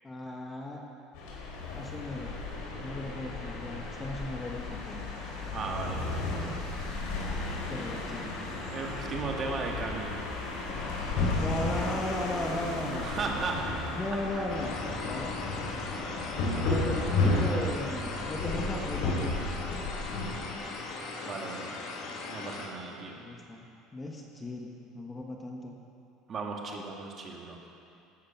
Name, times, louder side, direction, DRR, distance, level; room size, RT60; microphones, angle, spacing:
voice 1, 0.0-0.8 1.7-2.3 2.8-5.0 7.7-8.6 11.4-13.4 14.0-14.8 15.0-15.4 16.7-19.4 23.2-23.6 23.9-25.8, left 1 dB, 15° left, 1 dB, 1.4 m, -36 dB
sound 1, 1.1-20.3, left 2 dB, 70° left, 4.3 m, -33 dB
voice 2, 5.5-6.0 8.7-10.1 12.9-13.7 21.2-21.7 22.3-23.2 26.3-27.6, right 4 dB, 30° right, 1 dB, 2.0 m, -36 dB
sound 2, 14.5-22.7, left 3 dB, 50° left, 2.5 m, -38 dB
17.5 x 13.0 x 5.9 m, 2.7 s
cardioid pair, 150°, 0 cm